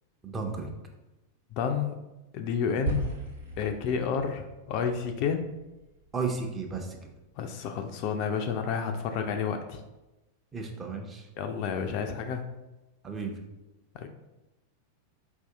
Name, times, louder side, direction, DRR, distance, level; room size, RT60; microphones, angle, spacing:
voice 1, 0.2-0.7 6.1-7.0 10.5-11.2 13.0-13.3, right 4 dB, 20° right, 2 dB, 0.6 m, -33 dB
voice 2, 1.5-1.9 2.3-3.1 3.6-5.4 7.4-9.8 11.4-12.4 13.9-14.1, left 6 dB, 45° left, 6 dB, 0.3 m, -30 dB
sound 1, 2.9-7.2, right 3 dB, 70° right, 0.8 m, -38 dB
4.5 x 2.7 x 3.4 m, 1.0 s
figure-of-eight pair, 90°, 0 cm